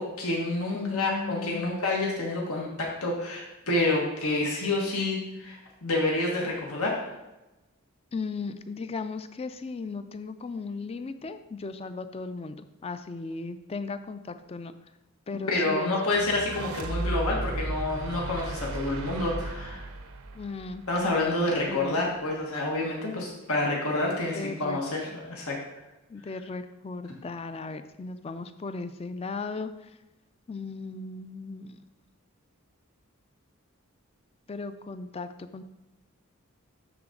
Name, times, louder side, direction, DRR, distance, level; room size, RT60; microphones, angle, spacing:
voice 1, 0.0-7.1 15.5-19.9 20.9-25.6, left 2 dB, 90° left, -2 dB, 1.6 m, -28 dB
voice 2, 0.7-1.7 8.1-14.7 15.3-15.9 20.3-20.8 21.7-22.0 24.3-24.8 26.1-30.0 30.5-31.8 34.5-35.6, left 4 dB, 25° left, 10 dB, 0.4 m, -36 dB
sound 1, 16.1-21.4, right 2 dB, 75° right, 0.7 m, -35 dB
12.0 x 4.1 x 3.8 m, 1.0 s
head